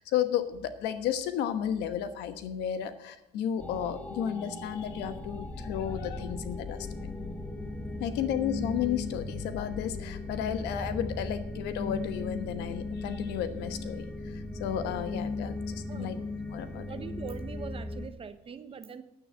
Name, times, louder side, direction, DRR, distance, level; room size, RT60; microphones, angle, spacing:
voice 1, 0.0-7.2 8.0-16.2 16.5-16.8, left 9 dB, 85° left, 10 dB, 1.2 m, -33 dB
sound 1, 3.6-18.1, left 2 dB, 10° left, 1.2 m, -37 dB
voice 2, 15.9-16.2 16.7-19.0, right 6 dB, 35° right, 11 dB, 0.9 m, -42 dB
9.6 x 9.1 x 6.5 m, 0.92 s
cardioid pair, 110°, 17 cm